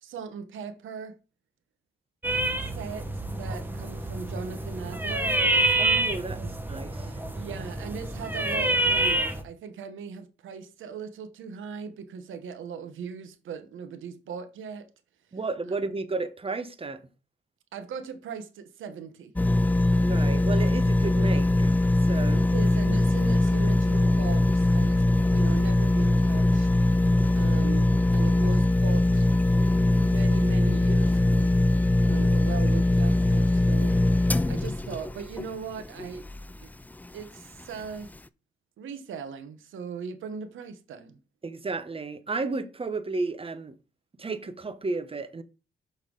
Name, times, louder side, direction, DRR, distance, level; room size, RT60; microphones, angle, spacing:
voice 1, 0.0-1.1 2.8-3.1 3.3-5.3 6.4-6.5 7.3-14.9 17.7-19.3 22.3-26.7 27.3-29.3 29.7-31.5 32.1-34.0 34.5-36.2 36.6-36.7 37.1-38.1 38.8-41.2, right 6 dB, 90° right, 1.1 m, -39 dB
sound 1, 2.2-9.4, right 1 dB, 10° right, 1.3 m, -27 dB
voice 2, 5.8-6.4 6.7-7.2 15.3-17.0 19.9-21.7 22.0-22.4 41.4-43.8 44.2-45.4, right 3 dB, 30° right, 1.0 m, -32 dB
sound 2, 19.4-36.6 37.0-37.1, left 2 dB, 10° left, 0.3 m, -22 dB
6.4 x 5.6 x 3.9 m
cardioid pair, 75°, 20 cm